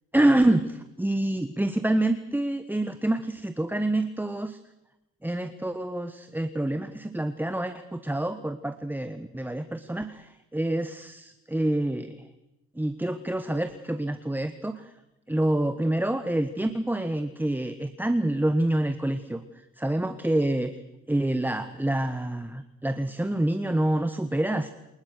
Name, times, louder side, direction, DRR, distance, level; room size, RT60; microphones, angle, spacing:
voice 1, 0.1-4.6 5.2-12.2 12.8-14.8 15.3-19.4 19.8-20.8 21.1-24.7, right 1 dB, 5° right, 10 dB, 1.3 m, -27 dB
29.0 x 20.0 x 6.7 m, 0.94 s
cardioid pair, 90°, 30 cm